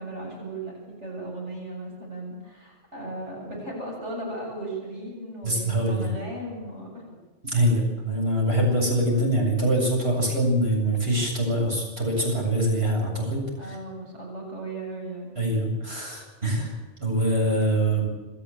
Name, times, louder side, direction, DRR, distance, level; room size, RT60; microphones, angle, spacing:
voice 1, 0.0-7.1 13.6-15.4, right 2 dB, 80° right, -2 dB, 8.3 m, -36 dB
voice 2, 5.4-6.1 7.4-13.8 15.4-16.7 17.0-18.1, right 1 dB, 60° right, -1 dB, 8.3 m, -24 dB
28.0 x 13.0 x 9.0 m, 1.2 s
omnidirectional pair, 1.2 m